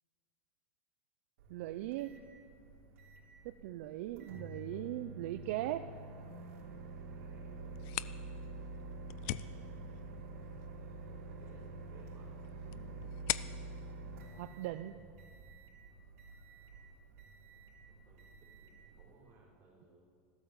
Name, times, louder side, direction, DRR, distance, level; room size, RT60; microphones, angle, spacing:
Microwave oven, 1.4-19.3, right 2 dB, 85° right, 3.3 m, -48 dB
voice 1, 1.5-2.2 3.4-5.9 14.3-15.0, right 14 dB, 65° right, 10 dB, 0.5 m, -39 dB
voice 2, 7.1-7.8 8.8-9.7 11.0-12.3 17.9-20.0, right 3 dB, 30° right, -3 dB, 5.6 m, -64 dB
sound 1, 7.6-15.2, left 18 dB, 55° left, 0.4 m, -44 dB
16.0 x 12.5 x 7.1 m, 2.2 s
supercardioid pair, 145°, 8 cm